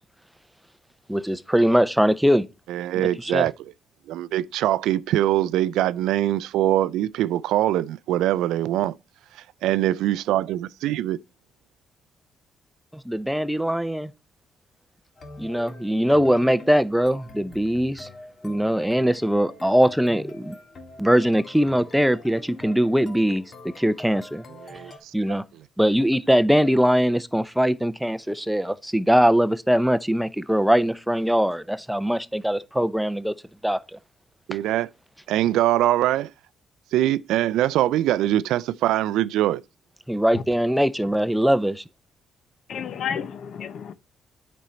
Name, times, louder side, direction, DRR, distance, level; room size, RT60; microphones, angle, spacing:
voice 1, 1.1-2.5 3.0-3.5 12.9-14.1 15.4-18.1 18.4-20.6 21.0-24.4 25.1-25.4 25.8-33.3 33.6-34.0 40.1-41.8, equal, ahead, 0.6 m, -21 dB
voice 2, 2.7-3.5 4.1-8.9 9.6-11.2 24.6-25.1 34.5-34.9 35.3-36.3 36.9-39.6, right 13 dB, 90° right, 0.3 m, -23 dB
sound 1, 15.2-25.0, left 2 dB, 45° left, 1.7 m, -44 dB
voice 3, 42.7-43.9, left 8 dB, 65° left, 0.7 m, -31 dB
9.2 x 5.1 x 4.3 m
cardioid pair, 90°, 0 cm